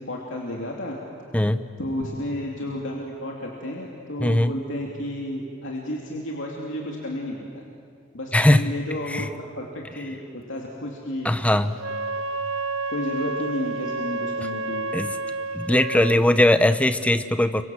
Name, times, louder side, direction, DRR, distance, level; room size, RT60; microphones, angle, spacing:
voice 1, 0.1-1.0 1.8-7.6 8.1-9.3 9.6-11.3 12.9-14.9, left 1 dB, 65° left, -1 dB, 2.8 m, -32 dB
voice 2, 1.3-1.6 4.2-4.5 8.3-8.7 9.1-9.3 11.2-11.8 14.9-15.2 15.5-17.6, left 1 dB, 5° left, 11 dB, 0.8 m, -20 dB
Wind instrument woodwind instrument, 11.7-16.2, right 2 dB, 90° right, 0.9 m, -30 dB
29.5 x 24.5 x 7.7 m, 2.3 s
head